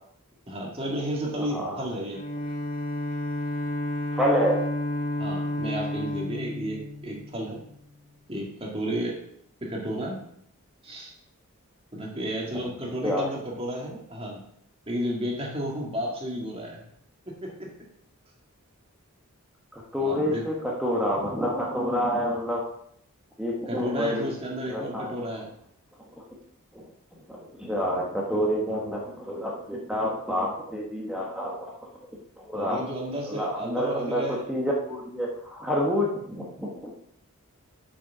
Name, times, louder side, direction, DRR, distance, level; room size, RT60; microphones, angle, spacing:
voice 1, 0.5-2.2 5.2-7.6 8.3-9.2 9.6-10.2 10.8-11.1 11.9-14.4 14.9-16.9 17.3-17.7 20.0-20.5 23.7-25.5 32.5-34.4, equal, 25° right, -1 dB, 1.8 m, -32 dB
voice 2, 1.4-1.8 4.1-4.6 13.0-13.3 19.7-20.5 20.8-22.6 23.4-24.3 24.7-25.1 26.2-26.3 26.7-26.8 27.3-31.6 32.4-32.9 33.3-34.2 34.5-36.9, equal, 5° right, -3 dB, 1.1 m, -28 dB
Bowed string instrument, 2.1-7.7, left 1 dB, 40° left, 1.4 m, -31 dB
6.9 x 6.3 x 5.5 m, 0.69 s
head